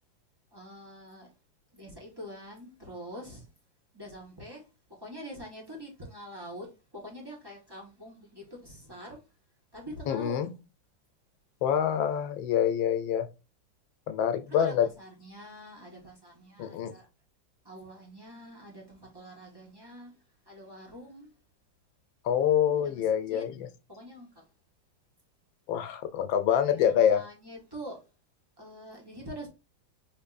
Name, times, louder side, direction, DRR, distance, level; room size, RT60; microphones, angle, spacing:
voice 1, 0.5-1.3 1.7-3.5 3.9-9.2 9.7-10.5 14.5-17.1 17.6-20.1 20.5-21.3 22.8-23.4 23.9-24.4 26.7-28.0 28.6-29.5, equal, 15° right, 0.9 m, -45 dB
voice 2, 10.1-10.5 11.6-13.3 14.1-14.9 16.6-16.9 22.2-23.7 25.7-27.2, left 9 dB, 85° left, 1.4 m, -26 dB
5.1 x 2.6 x 2.4 m
omnidirectional pair, 2.1 m